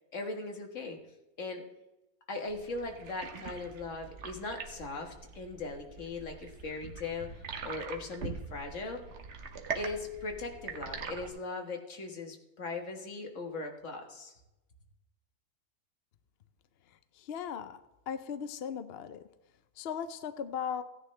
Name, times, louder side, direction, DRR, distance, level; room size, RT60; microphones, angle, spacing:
voice 1, 0.1-1.0 1.4-1.6 2.3-9.0 9.7-14.4, left 3 dB, 50° left, 3 dB, 1.8 m, -39 dB
sound 1, 2.5-11.3, right 5 dB, 50° right, 1.3 m, -43 dB
voice 2, 17.1-17.8 18.1-19.3 19.8-20.8, left 7 dB, 65° left, 11 dB, 0.6 m, -37 dB
16.5 x 9.8 x 3.3 m, 0.96 s
omnidirectional pair, 1.7 m